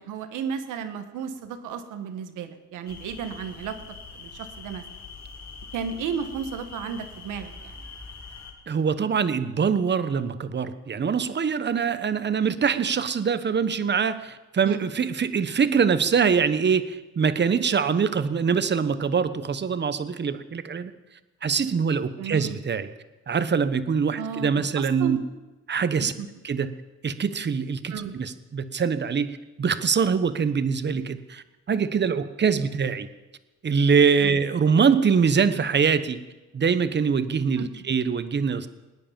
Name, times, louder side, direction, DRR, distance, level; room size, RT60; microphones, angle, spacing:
voice 1, 0.0-3.8 4.1-4.8 5.7-7.8 14.6-14.8 22.2-22.6 24.2-25.2 26.0-26.3 27.9-28.1 32.5-32.6 34.2-34.4 37.6-37.7, right 7 dB, 85° right, 9 dB, 1.5 m, -33 dB
sound 1, 2.9-8.5, left 4 dB, 65° left, 4.0 m, -43 dB
voice 2, 8.7-20.9 21.4-22.9 23.3-25.2 25.7-26.1 26.4-26.7 27.0-33.1 33.6-36.2 36.5-38.7, right 6 dB, 35° right, 12 dB, 1.1 m, -24 dB
20.0 x 9.8 x 7.4 m, 1.1 s
cardioid pair, 90°, 30 cm